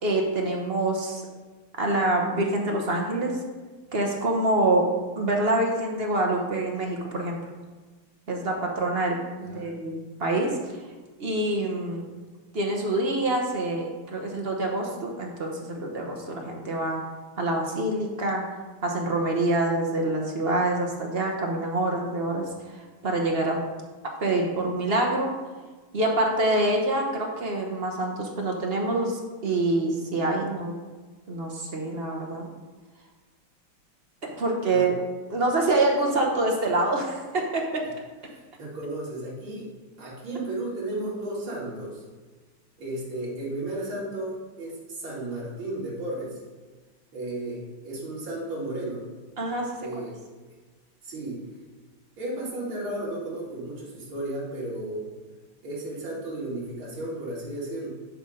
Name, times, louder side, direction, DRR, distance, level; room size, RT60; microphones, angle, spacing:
voice 1, 0.0-1.2 1.8-3.3 3.9-4.9 5.2-7.4 8.3-10.6 11.2-12.0 12.5-17.0 17.4-18.4 18.8-22.5 22.7-23.6 24.2-25.3 25.9-30.7 31.3-32.4 34.2-34.9 35.3-37.9 49.4-50.0, right 2 dB, 45° right, 1 dB, 0.8 m, -26 dB
voice 2, 38.6-39.7 40.0-42.0 42.8-46.4 47.1-49.0 49.8-50.2 51.0-51.4 52.2-55.0 55.6-57.9, right 1 dB, 70° right, -6 dB, 3.2 m, -34 dB
10.5 x 4.2 x 5.0 m, 1.3 s
omnidirectional pair, 2.3 m